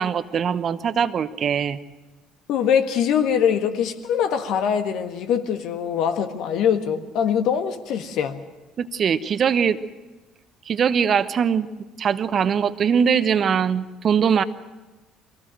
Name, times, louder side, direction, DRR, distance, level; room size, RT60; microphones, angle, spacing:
voice 1, 0.0-1.8 8.8-9.8 10.7-11.7 12.0-14.4, right 7 dB, 50° right, 13 dB, 1.1 m, -21 dB
voice 2, 2.5-8.4, left 8 dB, 65° left, 7 dB, 1.6 m, -23 dB
24.0 x 18.5 x 7.8 m, 1.2 s
hypercardioid pair, 55°, 0 cm